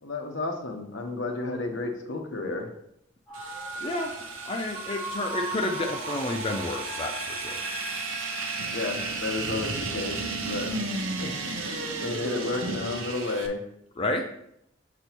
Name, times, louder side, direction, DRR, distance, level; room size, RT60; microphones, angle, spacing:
voice 1, 0.0-2.7 8.7-10.8 11.2-11.5 12.0-13.6, left 3 dB, 75° left, 4 dB, 1.0 m, -32 dB
sound 1, 3.3-10.5, right 1 dB, 5° right, 2.8 m, -39 dB
sound 2, 3.3-13.5, right 3 dB, 90° right, 0.8 m, -34 dB
voice 2, 3.8-4.1 4.5-7.7 14.0-14.2, left 2 dB, 30° left, 2 dB, 0.5 m, -30 dB
6.7 x 6.1 x 3.0 m, 0.75 s
head